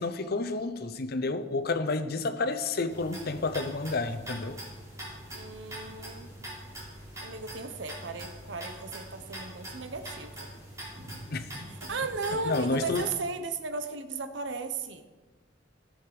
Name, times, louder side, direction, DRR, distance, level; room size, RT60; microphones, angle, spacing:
voice 1, 0.0-4.6 11.3-11.5 12.4-13.1, left 3 dB, 60° left, 9 dB, 0.8 m, -30 dB
sound 1, 2.9-13.1, right 1 dB, 20° right, 4.2 m, -43 dB
voice 2, 5.3-6.3 7.2-10.5 11.9-15.0, right 4 dB, 85° right, 9 dB, 1.0 m, -36 dB
17.0 x 6.5 x 5.0 m, 1.3 s
head